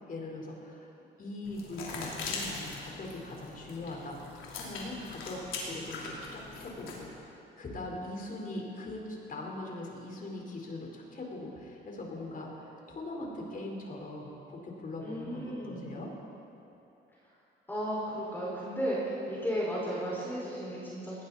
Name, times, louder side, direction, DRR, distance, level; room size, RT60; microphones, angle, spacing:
voice 1, 0.1-0.9 1.2-7.1 7.6-16.1, left 2 dB, 45° left, -1 dB, 4.2 m, -41 dB
sound 1, 1.4-7.1, left 3 dB, 85° left, 3.2 m, -41 dB
voice 2, 15.0-15.9 17.7-21.2, equal, 10° left, -7 dB, 5.0 m, -34 dB
20.0 x 17.5 x 4.2 m, 2.9 s
cardioid pair, 90°, 20 cm